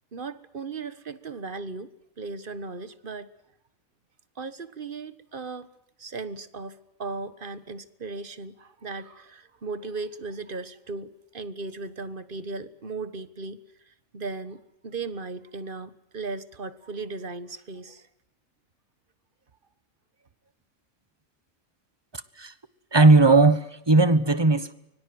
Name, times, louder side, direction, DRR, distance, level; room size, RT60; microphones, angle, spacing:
voice 1, 0.1-3.3 4.3-5.7 6.0-18.1, right 3 dB, 40° right, 1.5 m, -37 dB
voice 2, 22.9-24.7, right 3 dB, 20° right, 1.1 m, -17 dB
25.0 x 23.0 x 7.8 m
omnidirectional pair, 1.4 m